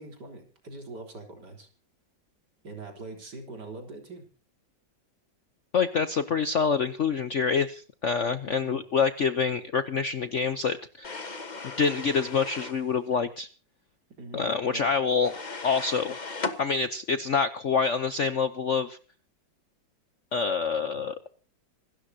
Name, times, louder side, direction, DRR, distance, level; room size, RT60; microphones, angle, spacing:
voice 1, 0.0-1.7 2.6-4.2 8.5-8.8 14.2-14.8 20.9-21.1, right 2 dB, 60° right, 4 dB, 4.3 m, -43 dB
voice 2, 5.7-11.2 11.8-13.5 14.3-15.4 15.6-16.1 16.6-19.0 20.3-21.3, left 5 dB, 55° left, 11 dB, 0.9 m, -26 dB
sound 1, 11.0-12.8 15.3-16.6, left 4 dB, 25° left, 1.2 m, -36 dB
26.5 x 13.0 x 2.8 m, 0.39 s
omnidirectional pair, 2.1 m